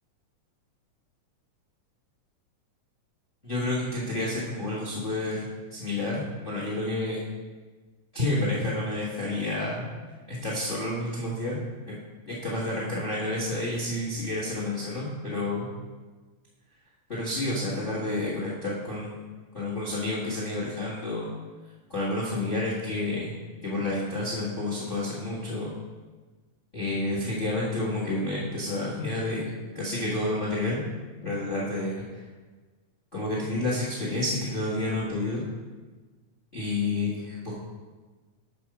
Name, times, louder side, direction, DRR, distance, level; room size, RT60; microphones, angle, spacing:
voice 1, 3.4-7.3 8.1-9.8 10.3-11.6 11.9-12.0 12.3-15.7 17.1-19.2 19.5-21.3 21.9-23.3 23.6-25.7 26.7-30.8 31.2-31.9 33.1-35.4 36.5-37.5, left 2 dB, 40° left, -6 dB, 0.7 m, -30 dB
7.5 x 4.4 x 5.9 m, 1.3 s
omnidirectional pair, 3.9 m